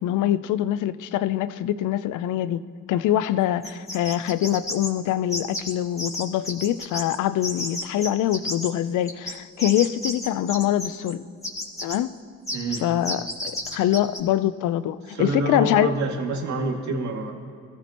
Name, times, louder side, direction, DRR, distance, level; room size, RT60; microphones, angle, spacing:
voice 1, 0.0-2.6 2.9-11.3 11.8-12.1 12.8-15.9, left 12 dB, 85° left, 14 dB, 0.6 m, -24 dB
sound 1, 3.6-4.9 5.3-5.7 6.0-7.2 7.4-8.7 9.1-11.1 11.4-12.0 12.5-12.8 13.0-14.2, left 1 dB, 10° left, 2.8 m, -31 dB
voice 2, 12.5-12.9 15.1-17.3, right 3 dB, 65° right, 1 dB, 2.4 m, -27 dB
23.0 x 14.5 x 3.0 m, 2.4 s
cardioid pair, 90°, 30 cm